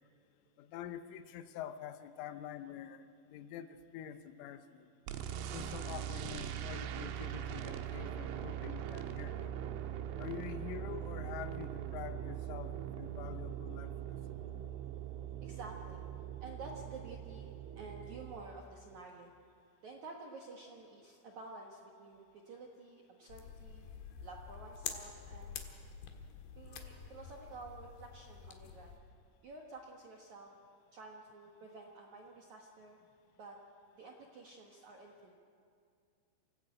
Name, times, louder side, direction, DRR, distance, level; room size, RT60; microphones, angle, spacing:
voice 1, 0.6-4.9 5.5-9.5 10.2-14.2, left 10 dB, 85° left, 10 dB, 3.4 m, -46 dB
sound 1, 5.1-18.4, right 10 dB, 85° right, 3.6 m, -41 dB
voice 2, 15.4-16.0 16.4-19.3 19.8-23.9 24.2-25.6 26.6-28.9 29.4-30.5 30.9-33.0 33.4-33.6 33.9-35.3, right 3 dB, 65° right, 0 dB, 1.8 m, -51 dB
sound 2, 23.3-29.0, left 7 dB, 65° left, 3.3 m, -47 dB
28.0 x 17.5 x 8.4 m, 2.4 s
omnidirectional pair, 5.6 m